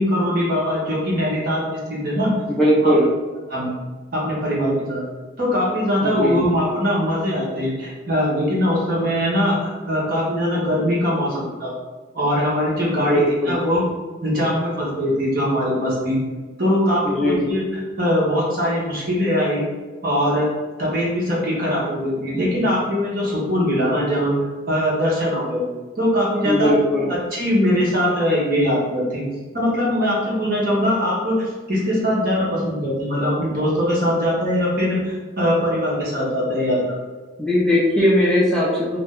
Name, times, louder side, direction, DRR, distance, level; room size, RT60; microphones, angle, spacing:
voice 1, 0.0-2.3 2.8-2.9 3.5-3.7 4.1-5.0 5.4-11.7 12.1-13.8 14.2-16.2 16.6-19.6 20.0-20.5 20.8-24.3 24.7-25.6 26.0-26.7 27.3-29.2 29.5-37.0, equal, 50° right, -6 dB, 1.2 m, -21 dB
voice 2, 2.5-3.1 5.9-6.4 13.0-13.6 17.0-17.5 26.4-27.1 37.4-39.0, equal, 5° left, -7 dB, 0.4 m, -19 dB
2.7 x 2.1 x 3.6 m, 1.3 s
head